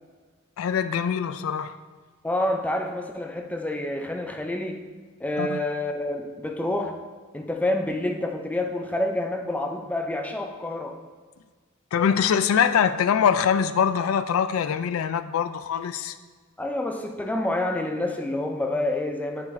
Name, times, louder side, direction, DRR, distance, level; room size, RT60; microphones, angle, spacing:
voice 1, 0.6-1.7 5.4-5.6 11.9-16.1, left 7 dB, 90° left, 12 dB, 0.3 m, -23 dB
voice 2, 2.2-4.8 5.2-7.0 7.3-11.0 16.6-19.5, left 1 dB, 5° left, 3 dB, 0.4 m, -28 dB
9.6 x 4.9 x 2.6 m, 1.5 s
head